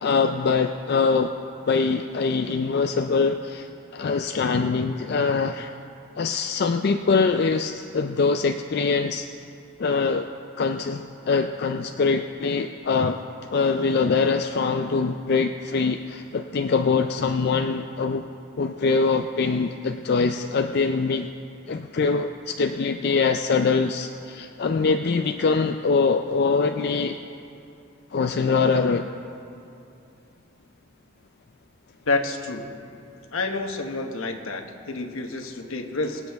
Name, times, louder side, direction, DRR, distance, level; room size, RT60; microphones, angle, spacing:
voice 1, 0.0-1.3 1.7-5.7 6.2-9.3 9.8-10.3 10.6-13.2 13.5-18.3 18.6-21.3 21.7-27.2 28.1-29.1, left 4 dB, 50° left, 6 dB, 0.4 m, -23 dB
voice 2, 32.1-32.6 33.3-36.2, left 3 dB, 75° left, 5 dB, 1.0 m, -28 dB
24.0 x 8.2 x 3.5 m, 2.7 s
head